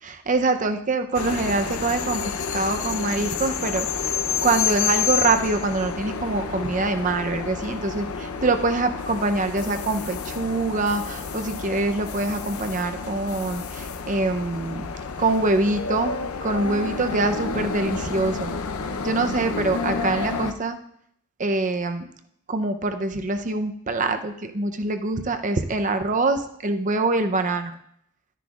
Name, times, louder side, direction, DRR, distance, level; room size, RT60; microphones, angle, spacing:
voice 1, 0.0-4.1 4.4-14.9 15.2-18.5 19.0-20.8 21.4-22.1 22.5-27.7, right 3 dB, 35° right, 7 dB, 0.6 m, -24 dB
sound 1, 1.1-20.5, left 6 dB, 90° left, 0.7 m, -29 dB
12.5 x 9.9 x 2.4 m, 0.70 s
head